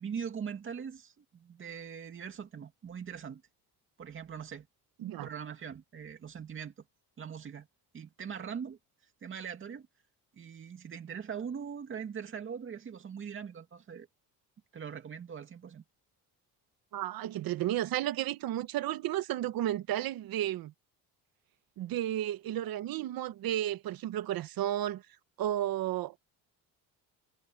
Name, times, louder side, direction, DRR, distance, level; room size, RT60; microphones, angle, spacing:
voice 1, 0.0-3.4 4.0-4.7 5.2-6.7 7.2-7.7 7.9-8.8 9.2-9.9 10.4-14.1 14.7-15.8, right 7 dB, 30° right, 2.5 m, -41 dB
voice 2, 16.9-20.7 21.8-25.0 25.4-26.2, right 13 dB, 60° right, 1.3 m, -33 dB
cardioid pair, 170°, 39 cm